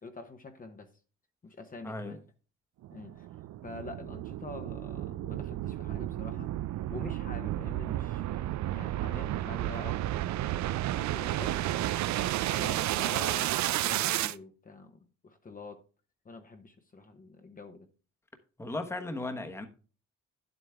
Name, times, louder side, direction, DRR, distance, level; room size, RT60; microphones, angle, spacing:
voice 1, 0.0-0.9 1.4-2.2 2.9-3.4 3.6-6.5 6.9-11.7 12.5-15.8 16.2-17.9, left 3 dB, 30° left, 1.0 m, -46 dB
voice 2, 1.8-2.2 18.6-19.7, left 2 dB, 10° left, 1.1 m, -36 dB
sound 1, 2.8-14.3, right 14 dB, 70° right, 0.5 m, -32 dB
11.0 x 7.9 x 3.5 m
cardioid pair, 135°, 30 cm